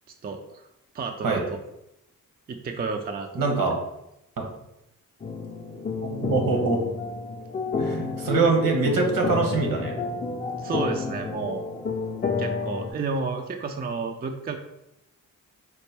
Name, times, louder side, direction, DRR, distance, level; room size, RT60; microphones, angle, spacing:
voice 1, 0.2-0.7 0.9-1.6 2.5-3.3 10.6-11.6 12.4-14.6, right 4 dB, 25° right, 5 dB, 0.4 m, -31 dB
voice 2, 3.3-3.8 4.4-4.5 6.1-6.8 7.8-10.0, right 4 dB, 65° right, 2 dB, 1.0 m, -23 dB
sound 1, 5.2-12.9, left 4 dB, 25° left, 0.5 m, -30 dB
4.3 x 2.1 x 3.3 m, 0.86 s
cardioid pair, 50°, 36 cm